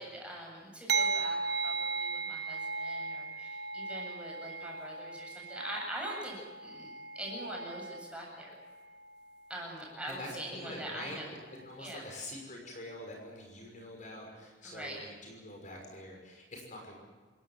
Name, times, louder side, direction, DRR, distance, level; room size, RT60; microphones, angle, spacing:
voice 1, 0.0-6.9 7.1-8.6 9.5-11.3 11.8-12.0 14.6-15.0, right 1 dB, 5° right, -2 dB, 7.8 m, -43 dB
sound 1, 0.9-10.0 10.7-10.9, right 4 dB, 65° right, 1.0 m, -37 dB
voice 2, 10.1-11.2 11.6-17.0, left 1 dB, 45° left, 1 dB, 6.0 m, -45 dB
28.5 x 16.5 x 7.7 m, 1.4 s
head